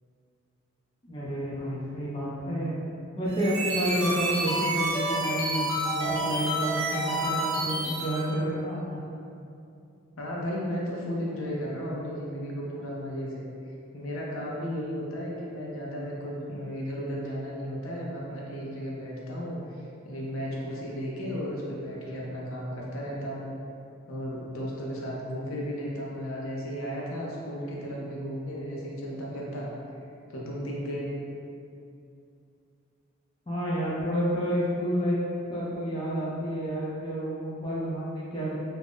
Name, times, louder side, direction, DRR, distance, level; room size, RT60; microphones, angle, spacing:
voice 1, 1.0-2.7 3.2-9.0 33.5-35.2 35.5-38.5, equal, 25° left, -8 dB, 0.4 m, -30 dB
sound 1, 3.2-8.3, right 1 dB, 90° right, 0.7 m, -29 dB
voice 2, 10.2-13.5 13.9-23.5 24.1-29.7 30.3-31.1, equal, 75° left, -4 dB, 0.5 m, -34 dB
2.4 x 2.1 x 3.5 m, 2.5 s
head